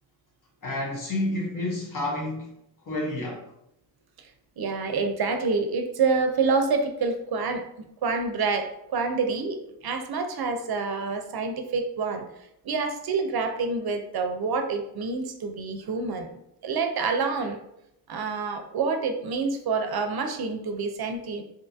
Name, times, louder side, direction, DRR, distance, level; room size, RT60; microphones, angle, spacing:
voice 1, 0.6-2.5 2.9-3.4, left 1 dB, 55° left, 0.9 m, -29 dB
voice 2, 4.6-12.3 12.6-17.6 18.1-21.4, right 4 dB, 70° right, 0.5 m, -27 dB
2.6 x 2.3 x 2.5 m
wide cardioid pair, 85°, 39 cm